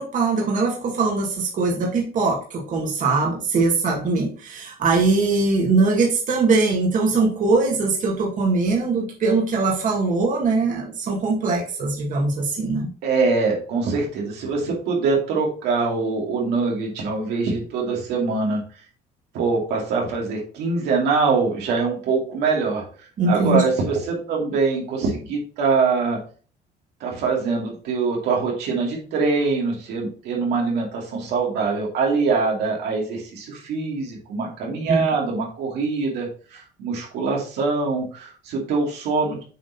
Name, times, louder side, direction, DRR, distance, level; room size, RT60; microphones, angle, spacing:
voice 1, 0.0-12.9 23.2-23.6 34.9-35.1, right 3 dB, 50° right, -2 dB, 2.1 m, -21 dB
voice 2, 13.0-18.6 19.3-22.8 23.3-26.2 27.0-39.4, right 4 dB, 80° right, -2 dB, 2.4 m, -23 dB
7.4 x 3.9 x 4.1 m, 0.40 s
cardioid pair, 110°, 17 cm